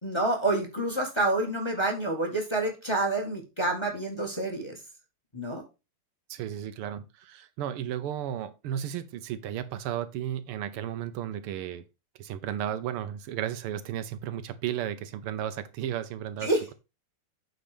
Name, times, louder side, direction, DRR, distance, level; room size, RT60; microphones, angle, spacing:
voice 1, 0.0-4.8 5.3-5.6 16.4-16.6, right 2 dB, 15° left, 1.5 m, -28 dB
voice 2, 6.3-11.8 12.2-16.5, right 10 dB, 90° right, 1.8 m, -34 dB
8.7 x 3.9 x 4.9 m
omnidirectional pair, 2.4 m